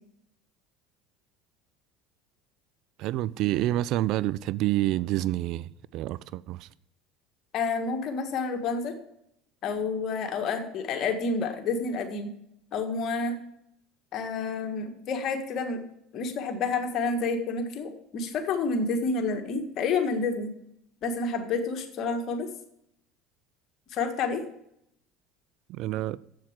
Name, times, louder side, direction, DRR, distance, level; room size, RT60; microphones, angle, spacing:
voice 1, 3.0-6.7 25.7-26.2, right 15 dB, 60° right, 0.3 m, -28 dB
voice 2, 7.5-9.0 9.6-12.3 12.7-13.4 14.1-15.8 16.1-20.5 21.0-22.5 23.9-24.4, left 4 dB, 50° left, 1.7 m, -29 dB
7.5 x 7.1 x 6.3 m
hypercardioid pair, 75°, 0 cm